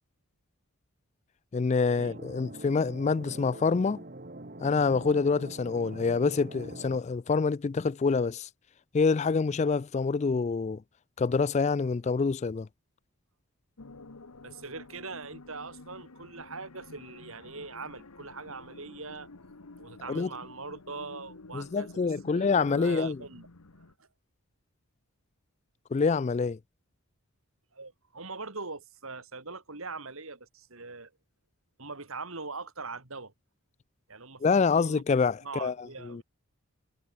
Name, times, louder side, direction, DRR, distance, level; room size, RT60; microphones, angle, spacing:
voice 1, 1.5-4.0 4.6-8.5 8.9-10.8 11.2-12.7 20.1-20.3 21.5-23.2 25.9-26.6 34.4-35.7 36.0-36.2, left 4 dB, 30° left, 0.3 m, -26 dB
sound 1, 2.0-7.0, right 2 dB, 40° right, 1.7 m, -44 dB
sound 2, 13.8-23.9, left 2 dB, 85° left, 1.3 m, -50 dB
voice 2, 14.4-19.3 19.8-21.9 22.3-23.5 23.8-24.1 27.7-31.1 31.8-33.3 34.1-35.0 35.4-36.2, right 3 dB, 65° right, 2.8 m, -42 dB
head